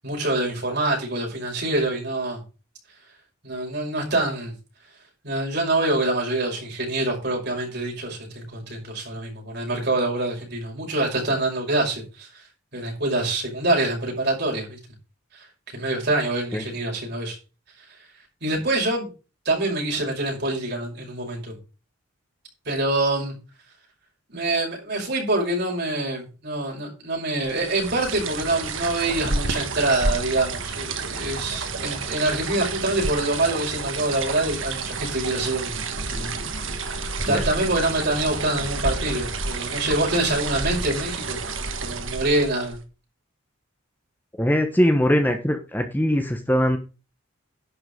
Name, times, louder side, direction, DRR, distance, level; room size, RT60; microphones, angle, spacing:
voice 1, 0.0-2.4 3.4-4.5 5.2-12.4 12.7-14.8 15.3-15.4 15.7-17.4 18.4-19.1 19.4-21.6 22.7-23.3 24.3-35.9 36.1-36.7 37.3-41.4 41.8-42.8, right 2 dB, 50° right, 5.8 m, -25 dB
sound 1, 27.4-42.8, right 3 dB, 65° right, 1.7 m, -30 dB
voice 2, 44.4-46.8, equal, 10° left, 1.2 m, -21 dB
11.0 x 5.9 x 6.7 m
head